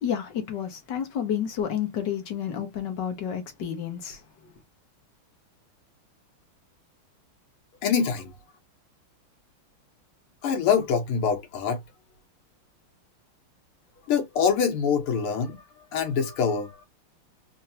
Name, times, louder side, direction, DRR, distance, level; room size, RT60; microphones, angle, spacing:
voice 1, 0.0-4.5, left 9 dB, 60° left, 1.7 m, -30 dB
voice 2, 7.8-8.3 10.4-11.8 14.1-15.6 15.9-16.8, left 6 dB, 85° left, 2.1 m, -25 dB
4.4 x 2.7 x 2.7 m
omnidirectional pair, 2.4 m